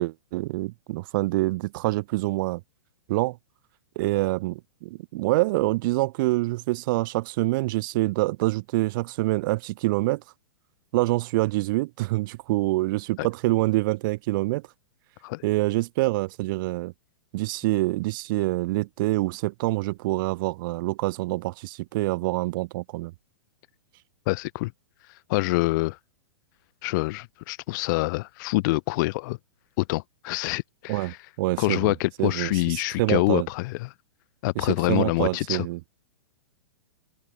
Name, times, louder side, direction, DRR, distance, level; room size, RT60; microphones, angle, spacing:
voice 1, 0.0-2.6 3.1-3.4 3.9-10.2 10.9-14.6 15.4-16.9 17.3-23.1 30.9-31.9 32.2-33.5 34.5-35.8, right 20 dB, 50° right, 1.5 m, -26 dB
voice 2, 24.3-24.7 25.3-26.0 26.8-29.4 29.8-31.2 31.6-33.9 34.4-35.7, left 22 dB, 45° left, 0.7 m, -26 dB
open air
hypercardioid pair, 120°, 14 cm